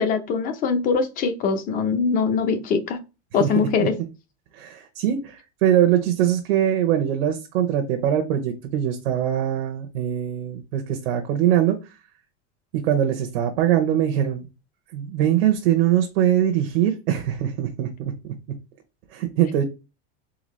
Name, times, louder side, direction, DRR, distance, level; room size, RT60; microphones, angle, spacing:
voice 1, 0.0-3.0 3.3-3.9, left 5 dB, 30° left, 8 dB, 0.7 m, -22 dB
voice 2, 3.4-3.9 4.5-11.9 12.7-14.5 14.9-18.3 19.1-19.6, right 10 dB, 80° right, 4 dB, 0.9 m, -22 dB
3.9 x 3.4 x 3.1 m, 0.28 s
supercardioid pair, 165°, 30 cm